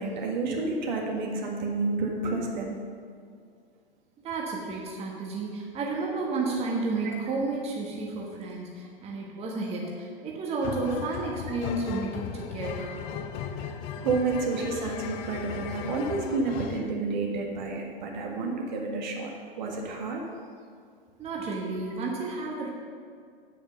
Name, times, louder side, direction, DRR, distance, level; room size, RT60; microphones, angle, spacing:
voice 1, 0.0-2.8 7.0-7.2 13.5-13.6 14.0-19.3 19.6-20.2, right 3 dB, 50° right, 0 dB, 1.7 m, -30 dB
voice 2, 4.2-13.0 21.2-22.7, right 3 dB, 20° right, -2 dB, 1.4 m, -32 dB
sound 1, 10.6-16.9, left 8 dB, 20° left, 0.4 m, -36 dB
8.6 x 8.5 x 5.4 m, 2.2 s
figure-of-eight pair, 105°, 29 cm